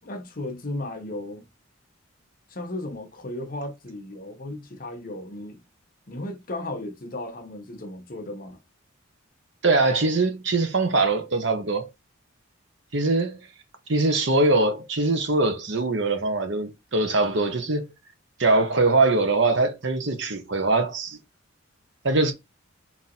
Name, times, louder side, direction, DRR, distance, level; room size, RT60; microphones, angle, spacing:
voice 1, 0.0-1.5 2.5-5.6 6.1-8.6, left 1 dB, 40° left, 0.8 m, -35 dB
voice 2, 9.6-11.9 12.9-13.4 13.9-17.9 18.4-21.2 22.0-22.3, right 3 dB, 55° right, 0.9 m, -22 dB
4.2 x 2.9 x 3.7 m
head